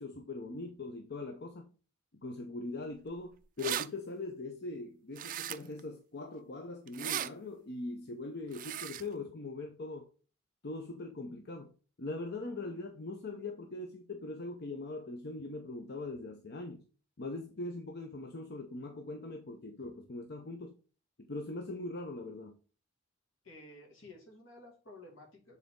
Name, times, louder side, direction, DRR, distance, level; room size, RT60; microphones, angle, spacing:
voice 1, 0.0-1.7 2.2-10.1 10.6-11.7 12.0-16.8 17.2-20.8 21.2-22.6, left 2 dB, 55° left, 0.8 m, -41 dB
sound 1, 3.1-3.2 3.4-3.9 5.1-5.8 6.9-7.3 8.5-9.0, right 11 dB, 45° right, 0.4 m, -37 dB
voice 2, 23.4-25.6, left 2 dB, 75° left, 2.4 m, -53 dB
7.4 x 4.0 x 3.8 m
head